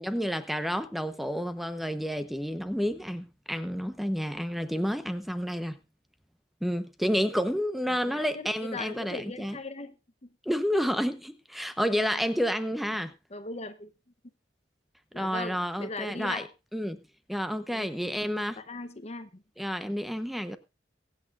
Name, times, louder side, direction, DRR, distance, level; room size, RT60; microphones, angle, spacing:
voice 1, 0.0-5.8 6.6-9.6 10.4-13.1 15.1-16.4 16.7-17.0 17.3-18.6 19.6-20.6, equal, ahead, 0.9 m, -30 dB
voice 2, 7.9-9.9 11.8-12.2 13.3-13.9 15.1-16.5 17.7-17.9 18.6-19.4, left 3 dB, 35° left, 0.9 m, -39 dB
23.0 x 8.5 x 2.5 m
head